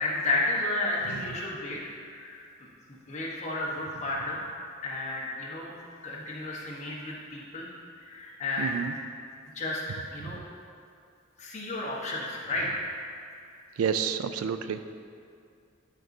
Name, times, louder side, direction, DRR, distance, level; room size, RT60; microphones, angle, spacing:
voice 1, 0.0-2.4 2.9-4.4 4.8-5.7 6.0-7.7 8.0-8.7 9.5-9.8 10.1-10.4 11.4-12.8, left 2 dB, 35° left, -4 dB, 1.1 m, -32 dB
voice 2, 8.6-8.9 10.2-10.4 13.8-14.8, right 7 dB, 85° right, 10 dB, 0.4 m, -30 dB
11.0 x 5.2 x 2.7 m, 2.3 s
head